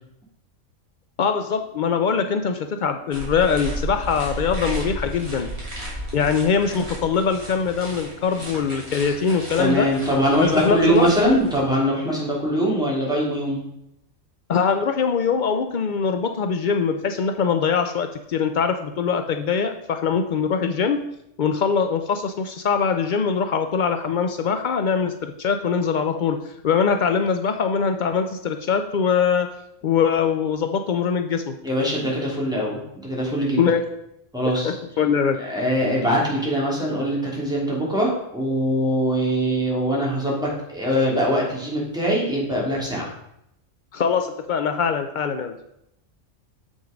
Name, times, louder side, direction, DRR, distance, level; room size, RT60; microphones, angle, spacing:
voice 1, 1.2-5.5 6.1-9.9 10.4-11.4 14.5-21.0 21.4-26.4 26.6-29.5 29.8-31.6 33.6-33.8 34.6-35.4 43.9-45.5, left 6 dB, 80° left, 7 dB, 0.4 m, -22 dB
sound 1, 3.1-11.6, right 1 dB, 20° right, 2.8 m, -34 dB
voice 2, 9.6-13.6 31.6-33.7 34.3-34.8 35.4-43.1, equal, 5° right, -5 dB, 2.7 m, -22 dB
7.1 x 6.2 x 5.0 m, 0.79 s
omnidirectional pair, 1.4 m